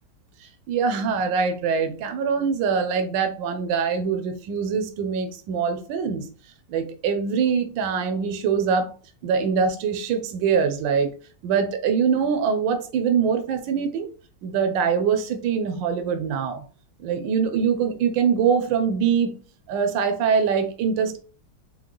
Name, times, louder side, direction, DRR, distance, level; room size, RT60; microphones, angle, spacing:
voice 1, 0.4-6.3 6.7-8.9 9.2-11.1 11.4-14.1 14.4-16.6 17.0-19.4 19.7-21.2, right 6 dB, 75° right, 6 dB, 1.3 m, -23 dB
4.7 x 2.0 x 3.7 m, 0.38 s
omnidirectional pair, 2.1 m